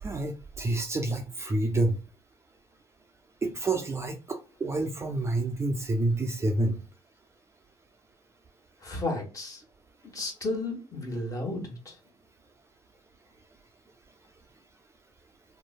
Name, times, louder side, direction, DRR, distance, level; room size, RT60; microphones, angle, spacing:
voice 1, 0.0-2.0 3.4-6.8, right 2 dB, 25° right, 0.4 m, -28 dB
voice 2, 8.8-9.6 10.1-11.9, left 2 dB, 30° left, 1.3 m, -33 dB
3.0 x 2.0 x 2.3 m
supercardioid pair, 80°, 11 cm